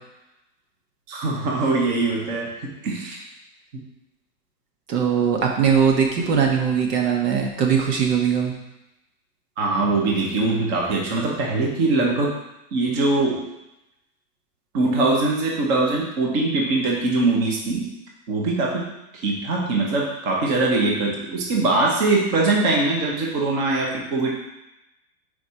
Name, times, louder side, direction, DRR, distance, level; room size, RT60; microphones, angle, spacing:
voice 1, 1.1-3.2 9.6-12.4 12.7-13.4 14.7-17.9 18.3-18.8 19.1-24.3, right 3 dB, 25° right, -1 dB, 0.9 m, -22 dB
voice 2, 4.9-8.5, right 7 dB, 90° right, 1 dB, 1.6 m, -20 dB
4.7 x 4.6 x 5.6 m, 0.93 s
supercardioid pair, 170°, 47 cm